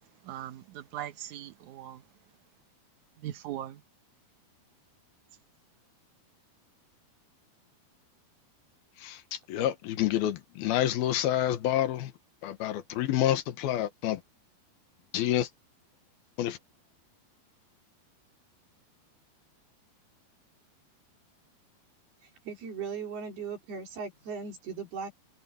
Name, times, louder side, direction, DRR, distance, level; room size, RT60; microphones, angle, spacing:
voice 1, 0.3-2.0 3.2-3.8, right 12 dB, 60° right, 2.4 m, -39 dB
voice 2, 9.0-12.1 12.4-14.2 15.1-15.5 16.4-16.6, left 12 dB, 75° left, 3.1 m, -28 dB
voice 3, 22.4-25.1, right 6 dB, 90° right, 6.5 m, -38 dB
omnidirectional pair, 4.4 m